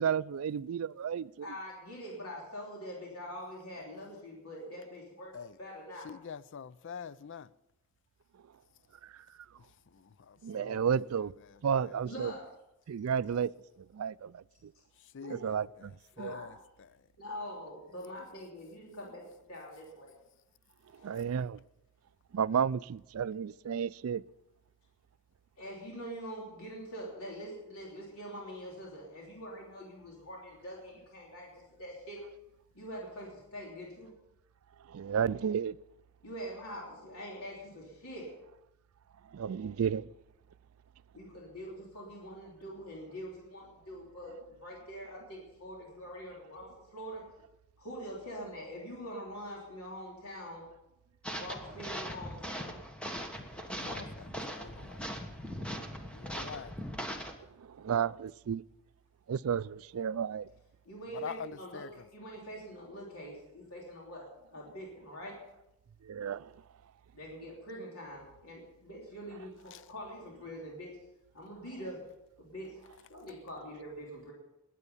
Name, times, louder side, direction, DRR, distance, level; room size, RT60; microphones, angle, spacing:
voice 1, 0.0-1.5 9.0-9.1 10.4-11.3 11.6-12.3 12.9-13.5 13.9-14.7 15.3-15.9 16.2-16.3 21.0-21.6 22.3-24.2 34.9-35.8 39.3-40.1 55.6-55.8 57.6-58.6 59.3-60.5 66.0-66.5, right 7 dB, 75° right, 0.4 m, -32 dB
voice 2, 1.4-6.1 12.0-12.4 14.7-14.8 15.2-15.5 16.2-16.5 17.2-20.1 25.6-32.2 32.7-34.1 36.2-38.4 41.1-47.2 47.8-50.7 51.3-52.8 60.8-65.4 67.1-71.0 71.3-72.0 72.4-72.8 73.1-74.3, equal, 85° left, 3.2 m, -44 dB
voice 3, 6.0-7.5 9.6-10.9 11.5-12.0 15.1-16.9 21.1-21.2 53.8-55.0 56.1-56.9 61.1-62.1 69.7-69.8, left 7 dB, 60° left, 0.4 m, -46 dB
sound 1, 51.2-57.3, equal, 5° left, 1.5 m, -40 dB
20.5 x 8.4 x 5.5 m
head